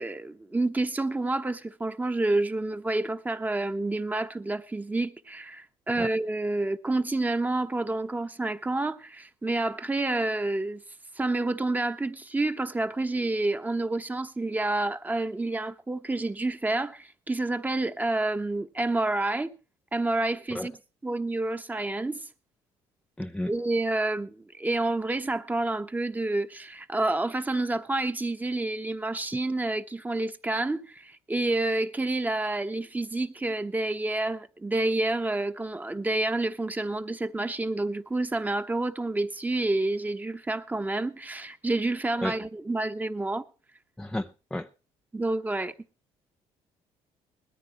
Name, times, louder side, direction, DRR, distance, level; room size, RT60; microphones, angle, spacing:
voice 1, 0.0-10.8 11.2-19.5 19.9-20.8 21.0-22.2 23.5-43.4 45.1-45.7, right 2 dB, 15° right, 1.2 m, -29 dB
voice 2, 23.2-23.5 42.2-42.4 44.0-44.7, left 1 dB, 5° left, 0.6 m, -32 dB
20.5 x 14.0 x 3.0 m
cardioid pair, 105°, 12 cm